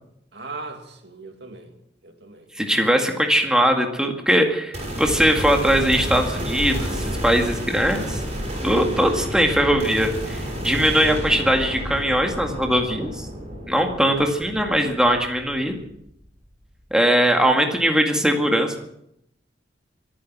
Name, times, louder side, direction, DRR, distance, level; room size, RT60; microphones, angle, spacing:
voice 1, 0.3-1.7 2.0-2.5 17.3-17.6, right 3 dB, 70° right, 4 dB, 2.6 m, -39 dB
voice 2, 2.6-8.2 8.6-13.3 13.7-15.8 16.9-18.8, equal, 5° right, 3 dB, 2.0 m, -20 dB
sound 1, 4.7-16.1, equal, 35° right, 6.7 m, -30 dB
24.0 x 9.7 x 6.1 m, 0.76 s
head